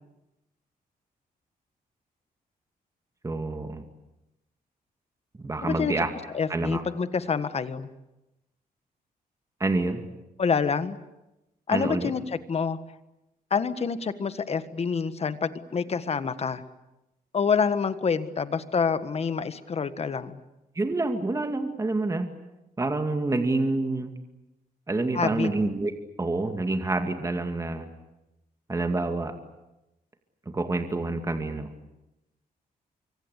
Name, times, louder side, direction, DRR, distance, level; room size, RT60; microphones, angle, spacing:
voice 1, 3.2-3.8 5.4-6.1 6.5-6.8 9.6-10.0 11.7-12.1 20.8-22.3 22.8-24.1 24.9-25.9 26.2-27.9 28.7-29.3 30.5-31.7, right 2 dB, 20° right, 6 dB, 2.2 m, -27 dB
voice 2, 5.6-5.9 6.3-7.9 10.4-11.0 11.7-12.8 13.5-16.6 17.3-20.4 25.1-25.5, left 6 dB, 40° left, 12 dB, 1.5 m, -27 dB
25.0 x 25.0 x 8.3 m, 0.94 s
cardioid pair, 120°, 16 cm